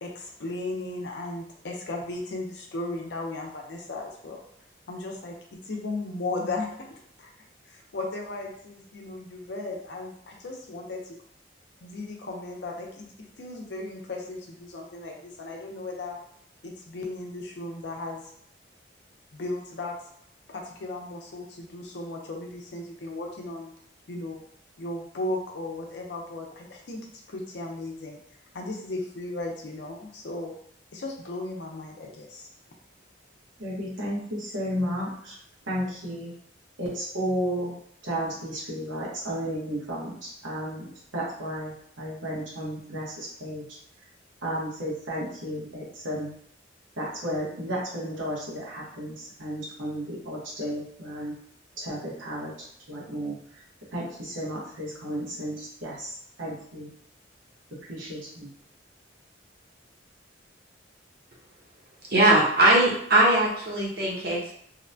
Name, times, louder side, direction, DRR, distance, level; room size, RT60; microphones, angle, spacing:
voice 1, 0.0-4.4 4.9-5.4 5.6-7.3 7.7-11.2 11.8-13.1 13.4-16.2 16.6-18.3 19.3-20.0 20.5-23.7 24.1-24.4 24.8-28.2 28.5-30.5 30.9-32.5, left 2 dB, 65° left, 1 dB, 0.5 m, -36 dB
voice 2, 33.6-35.4 35.7-36.3 36.8-37.8 38.0-43.6 44.4-46.3 47.0-51.3 51.8-52.5 52.9-53.4 53.9-56.9 57.7-58.5, equal, 85° right, -5 dB, 1.0 m, -33 dB
voice 3, 62.1-64.5, right 1 dB, 55° right, -3 dB, 0.8 m, -20 dB
2.8 x 2.1 x 2.6 m, 0.66 s
head